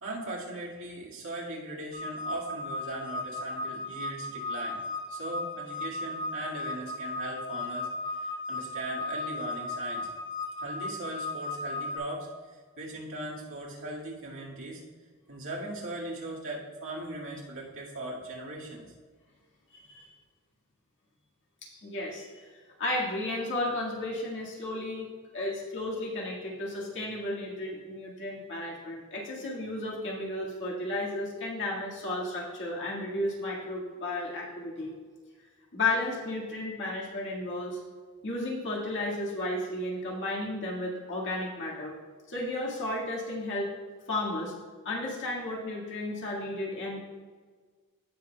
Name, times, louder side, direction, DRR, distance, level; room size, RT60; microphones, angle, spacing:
voice 1, 0.0-4.8 5.1-10.1 10.6-14.8 15.3-18.9, right 2 dB, 60° right, -4 dB, 2.1 m, -39 dB
sound 1, 1.9-12.0, left 2 dB, 35° left, 2.2 m, -36 dB
voice 2, 21.8-22.5 22.8-25.1 25.3-35.0 35.7-37.8 38.2-41.9 42.3-43.7 44.1-44.5 44.8-47.0, left 2 dB, 55° left, -3 dB, 2.0 m, -33 dB
16.5 x 6.0 x 2.4 m, 1.5 s
head